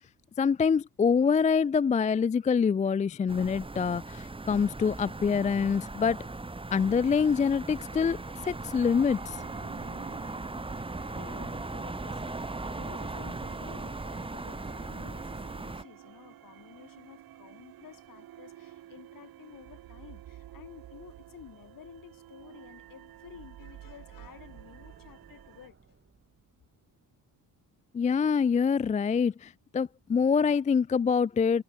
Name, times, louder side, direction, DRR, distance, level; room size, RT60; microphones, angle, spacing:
voice 1, 0.4-6.3 6.7-9.4 27.9-31.6, left 6 dB, 20° left, 0.4 m, -25 dB
sound 1, 3.3-15.8, right 2 dB, 15° right, 2.1 m, -38 dB
sound 2, 7.9-25.7, right 13 dB, 70° right, 2.3 m, -51 dB
voice 2, 11.1-26.0, left 10 dB, 60° left, 7.9 m, -52 dB
sound 3, 21.7-28.2, right 5 dB, 35° right, 7.7 m, -64 dB
cardioid pair, 90°, 37 cm